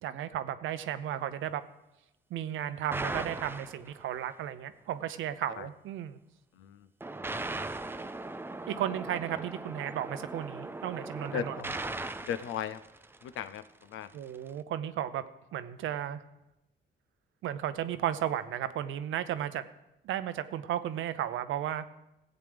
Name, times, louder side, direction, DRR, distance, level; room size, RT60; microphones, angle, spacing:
voice 1, 0.0-1.6 2.3-6.2 8.7-11.6 14.1-15.2 15.5-16.2 17.4-19.6 20.0-21.9, right 11 dB, 80° right, 11 dB, 0.7 m, -34 dB
sound 1, 2.9-4.3 7.0-13.6, right 2 dB, 10° right, 0.5 m, -39 dB
voice 2, 6.5-6.9 11.3-11.6 12.2-12.8 13.2-14.1, left 9 dB, 85° left, 14 dB, 0.6 m, -37 dB
15.5 x 8.0 x 3.5 m, 0.91 s
cardioid pair, 90°, 20 cm